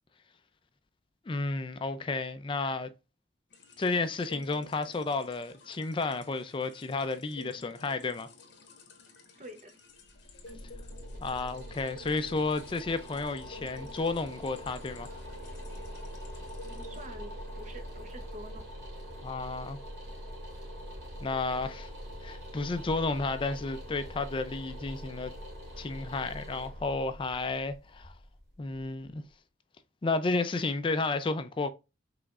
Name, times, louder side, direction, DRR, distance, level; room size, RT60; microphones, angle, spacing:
voice 1, 1.3-2.9 3.8-8.3 11.2-15.1 19.2-19.8 21.2-21.9 22.2-25.3 25.8-28.1 28.6-29.2 30.0-31.7, left 3 dB, 25° left, 0.4 m, -32 dB
sound 1, 3.5-17.1, left 3 dB, 60° left, 1.1 m, -53 dB
voice 2, 9.4-9.7 16.7-18.7, right 1 dB, 40° right, 0.8 m, -47 dB
sound 2, 10.1-29.0, equal, 65° right, 2.3 m, -43 dB
5.0 x 3.5 x 2.4 m
head